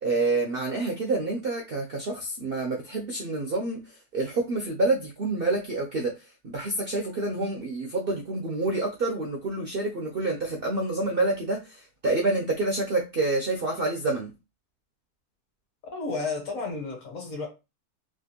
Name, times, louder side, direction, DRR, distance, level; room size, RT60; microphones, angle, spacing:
voice 1, 0.0-3.8 4.1-6.1 6.4-14.3, right 2 dB, 65° right, 0.5 m, -28 dB
voice 2, 15.9-17.5, left 3 dB, 55° left, 1.4 m, -32 dB
3.3 x 2.5 x 2.8 m
omnidirectional pair, 1.7 m